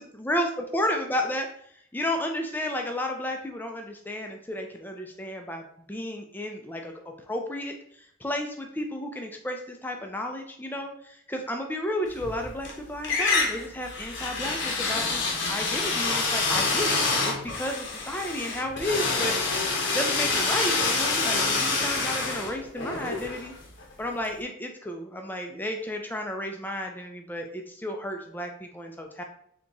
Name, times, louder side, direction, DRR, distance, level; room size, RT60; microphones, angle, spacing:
voice 1, 0.0-1.5 1.9-6.9 7.3-15.2 15.5-19.4 19.9-23.5 24.0-29.2, left 1 dB, 10° left, 3 dB, 0.4 m, -32 dB
sound 1, 12.1-12.7 13.0-23.9, left 3 dB, 55° left, 0.8 m, -27 dB
4.0 x 2.9 x 3.5 m, 0.66 s
head